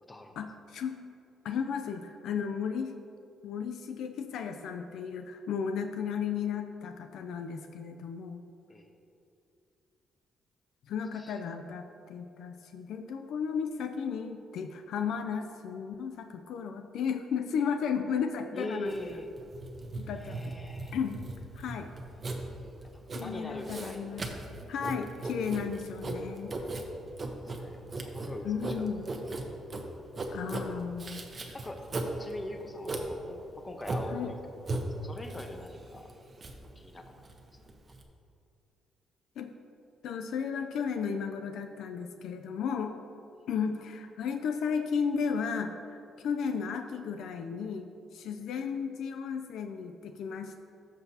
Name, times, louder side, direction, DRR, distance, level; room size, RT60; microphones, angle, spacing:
voice 1, 0.4-1.0 1.4-2.9 3.4-8.4 10.9-18.9 19.9-20.5 20.9-21.2 21.5-21.9 23.1-24.2 24.7-26.5 28.4-29.1 30.3-31.2 34.1-34.3 39.4-39.5 40.0-43.0 43.5-50.6, left 6 dB, 80° left, 6 dB, 0.4 m, -34 dB
voice 2, 18.5-19.3 20.1-21.0 22.9-24.1 25.0-25.3 27.2-28.8 30.3-30.4 31.5-31.8 32.1-34.4 35.0-36.1 36.7-37.1 37.5-37.6, left 1 dB, 20° left, 4 dB, 1.0 m, -42 dB
Writing, 18.9-38.0, right 2 dB, 40° right, 0.9 m, -38 dB
14.0 x 6.0 x 2.8 m, 2.6 s
cardioid pair, 90°, 0 cm